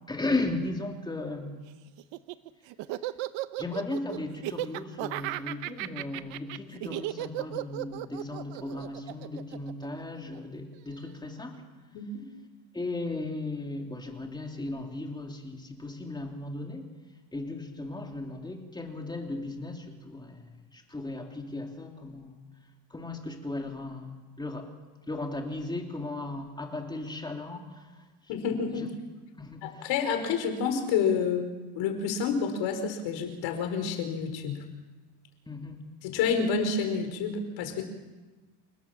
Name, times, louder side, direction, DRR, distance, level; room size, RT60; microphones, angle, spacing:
voice 1, 0.1-1.6 3.6-11.6 12.7-16.9 17.3-22.3 22.9-24.7 25.1-28.0 28.3-28.4 28.7-28.9 29.4-29.9 35.5-35.8, left 2 dB, 10° left, 2 dB, 3.1 m, -36 dB
Laughter, 2.0-10.4, right 16 dB, 70° right, 1.1 m, -35 dB
voice 2, 11.9-12.2 28.3-28.9 29.6-34.6 36.0-37.8, left 6 dB, 70° left, 5 dB, 5.1 m, -29 dB
28.5 x 19.0 x 7.4 m, 1.2 s
cardioid pair, 145°, 46 cm